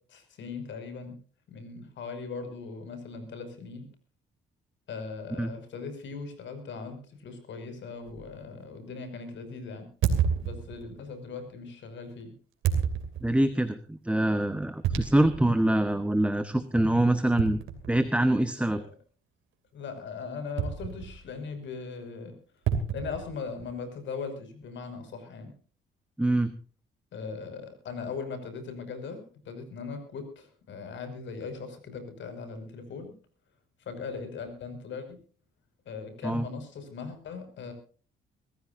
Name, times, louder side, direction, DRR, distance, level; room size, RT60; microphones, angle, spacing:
voice 1, 0.1-1.2 1.5-3.9 4.9-9.9 10.4-12.3 18.7-18.9 19.7-22.4 22.9-25.5 27.1-33.1 33.9-35.2 35.9-37.7, left 5 dB, 70° left, 8 dB, 5.5 m, -39 dB
sound 1, 8.1-8.3 10.0-11.0 12.6-13.5 14.8-15.5 15.9-16.0 17.4-18.3 20.6-21.4 22.7-23.8, right 7 dB, 85° right, 2.7 m, -30 dB
voice 2, 13.2-17.6 17.9-18.8 26.2-26.5 36.2-36.5, right 1 dB, 5° right, 10 dB, 1.1 m, -25 dB
24.5 x 15.0 x 2.6 m, 0.41 s
cardioid pair, 90°, 20 cm